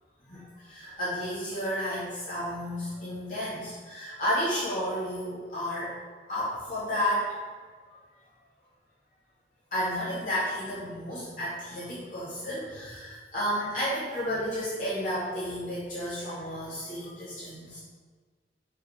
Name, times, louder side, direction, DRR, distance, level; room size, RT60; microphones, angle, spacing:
voice 1, 0.3-5.9 6.3-7.4 9.7-17.8, equal, 45° left, -11 dB, 2.9 m, -32 dB
7.0 x 5.5 x 6.5 m, 1.5 s
head